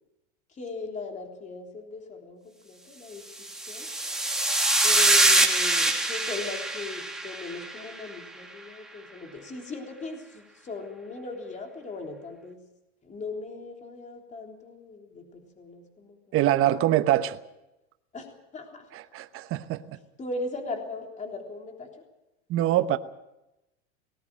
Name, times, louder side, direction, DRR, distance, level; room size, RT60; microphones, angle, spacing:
voice 1, 0.6-3.3 3.7-3.9 4.8-12.6 13.0-16.4 18.1-18.3 18.5-18.8 20.2-21.9, left 3 dB, 20° left, 3.5 m, -38 dB
sound 1, 3.4-7.9, right 2 dB, ahead, 2.5 m, -24 dB
voice 2, 16.3-17.4 18.9-20.0 22.5-23.0, right 13 dB, 35° right, 1.1 m, -24 dB
19.5 x 18.0 x 7.7 m
supercardioid pair, 130°, 36 cm